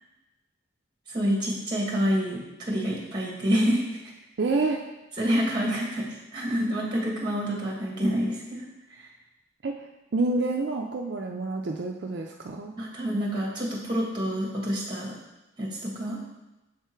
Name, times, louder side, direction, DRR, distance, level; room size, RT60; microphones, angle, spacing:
voice 1, 1.1-4.0 5.2-8.6 8.9-9.1 12.8-15.1 15.6-16.2, equal, 25° right, -3 dB, 1.7 m, -27 dB
voice 2, 4.4-4.8 9.6-9.9 10.1-12.7, right 3 dB, 65° right, 1 dB, 0.4 m, -28 dB
7.2 x 3.5 x 4.4 m, 1.0 s
head